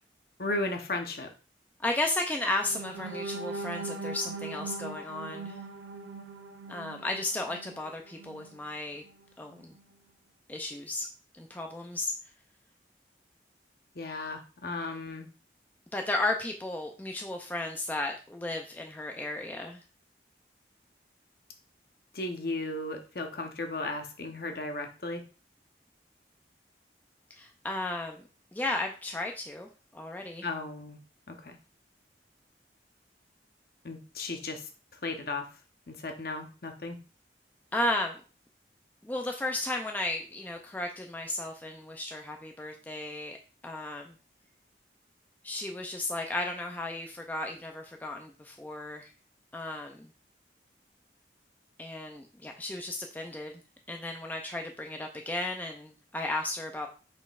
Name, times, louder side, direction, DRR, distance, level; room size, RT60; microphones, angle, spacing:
voice 1, 0.4-1.3 13.9-15.3 22.1-25.2 30.4-31.0 31.3-31.6 33.8-34.7 35.0-35.5 35.9-37.0, left 2 dB, 55° left, 5 dB, 0.8 m, -35 dB
voice 2, 1.8-5.6 6.7-9.0 9.4-9.8 10.5-11.1 11.4-12.1 15.9-19.8 27.3-28.2 28.5-30.5 37.7-38.2 39.0-43.4 43.6-44.1 45.4-49.1 49.5-50.1 51.8-53.6 53.9-56.9, left 2 dB, 10° left, 2 dB, 0.3 m, -34 dB
sound 1, 2.6-8.6 9.1-9.2 9.6-9.8, right 3 dB, 90° right, 0.4 m, -40 dB
5.4 x 4.1 x 2.4 m, 0.35 s
head